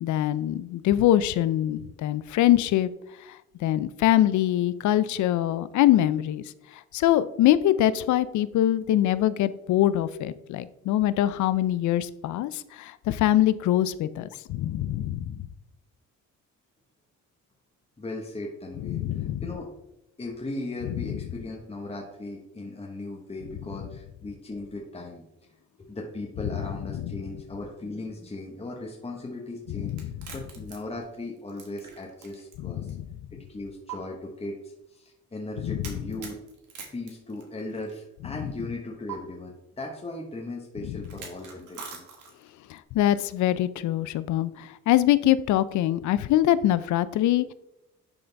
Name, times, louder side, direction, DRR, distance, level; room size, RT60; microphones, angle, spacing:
voice 1, 0.0-2.9 3.3-6.4 6.9-15.4 18.8-19.4 21.1-21.2 27.0-27.1 29.8-30.1 32.6-33.0 35.6-35.9 40.8-41.0 42.7-47.5, left 13 dB, 70° left, 16 dB, 0.5 m, -24 dB
voice 2, 18.0-19.7 20.2-25.2 25.8-32.9 33.3-36.4 36.9-42.1, left 2 dB, 20° left, -1 dB, 1.1 m, -37 dB
sound 1, 29.9-32.6 32.9-33.0 33.9-34.0 35.8-37.9 39.1-39.2 41.0-42.5, right 7 dB, 80° right, 1.7 m, -43 dB
10.5 x 3.9 x 3.4 m, 0.89 s
cardioid pair, 90°, 30 cm